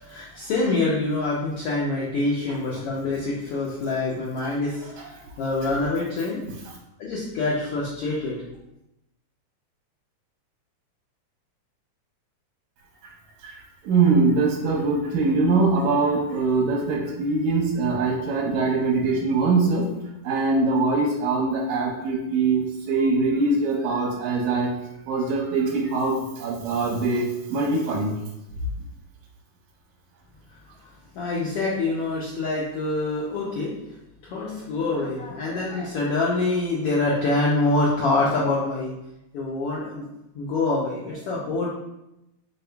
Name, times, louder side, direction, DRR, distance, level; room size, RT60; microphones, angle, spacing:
voice 1, 0.0-6.4 7.0-8.4 31.1-33.7 34.2-38.9 39.3-40.1 40.3-41.7, left 2 dB, 85° left, -5 dB, 1.3 m, -25 dB
voice 2, 13.8-19.9 20.2-24.7 25.1-28.1, right 3 dB, 75° right, -2 dB, 2.0 m, -22 dB
5.2 x 4.1 x 2.3 m, 0.90 s
omnidirectional pair, 3.5 m